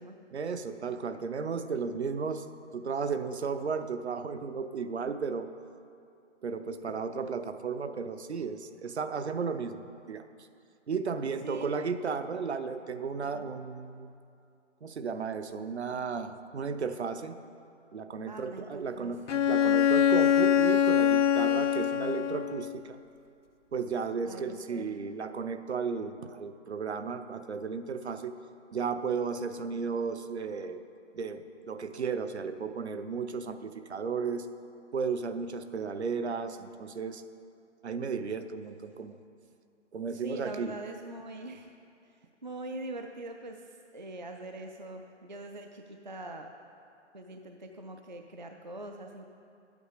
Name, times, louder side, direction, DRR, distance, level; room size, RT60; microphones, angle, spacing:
voice 1, 0.3-2.4 2.7-5.5 6.4-10.2 10.9-14.1 14.8-17.4 17.9-23.0 23.7-28.3 28.7-30.8 31.1-34.5 34.9-37.2 37.8-39.2 39.9-40.7, right 5 dB, 60° right, 10 dB, 0.7 m, -34 dB
voice 2, 18.3-19.1 24.2-24.9 40.1-41.7 42.1-46.5 47.1-49.2, right 1 dB, 40° right, 4 dB, 0.4 m, -43 dB
Bowed string instrument, 19.3-22.8, left 9 dB, 75° left, 0.5 m, -24 dB
11.0 x 8.6 x 5.0 m, 2.5 s
hypercardioid pair, 170°, 37 cm